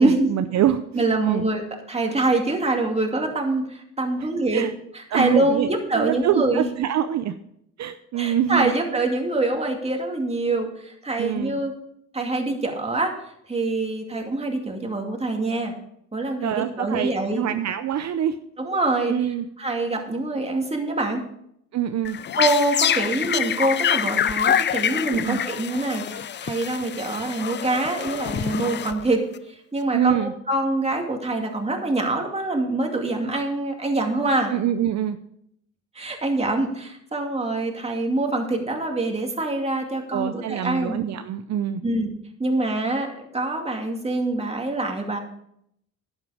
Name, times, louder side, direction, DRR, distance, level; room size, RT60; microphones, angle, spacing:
voice 1, 0.0-1.4 4.2-4.7 5.1-5.7 5.9-7.3 7.8-8.7 11.2-11.6 16.4-18.4 19.1-19.4 21.7-22.2 25.1-25.4 29.9-30.3 34.5-35.2 40.1-41.8, right 10 dB, 65° right, 9 dB, 0.6 m, -25 dB
voice 2, 0.9-1.6 1.9-4.7 4.9-6.7 8.1-11.7 12.1-13.2 13.5-15.7 16.1-17.5 18.6-19.1 19.6-21.2 22.4-34.5 35.9-40.9 41.8-42.1 42.4-45.2, right 2 dB, 20° right, 2 dB, 2.4 m, -25 dB
sound 1, 22.0-29.4, left 9 dB, 35° left, 0.5 m, -26 dB
11.0 x 8.2 x 5.0 m, 0.73 s
cardioid pair, 90°, 30 cm